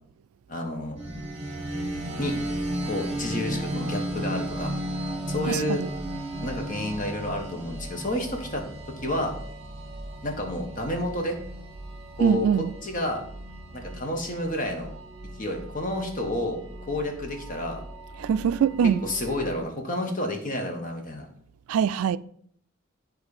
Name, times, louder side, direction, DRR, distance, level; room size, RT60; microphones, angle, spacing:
voice 1, 0.5-1.0 2.2-2.4 2.8-4.7 5.3-5.8 6.4-8.6 9.0-9.4 10.2-11.4 12.2-12.5 12.8-13.2 13.7-14.9 15.4-16.6 16.9-17.8 19.0-21.3, left 1 dB, 40° left, 1.2 m, -30 dB
sound 1, 1.0-19.6, right 1 dB, 30° right, 1.6 m, -35 dB
voice 2, 5.5-5.9 12.2-12.7 18.2-19.0 21.7-22.2, right 7 dB, 85° right, 0.3 m, -23 dB
9.2 x 3.2 x 4.9 m
head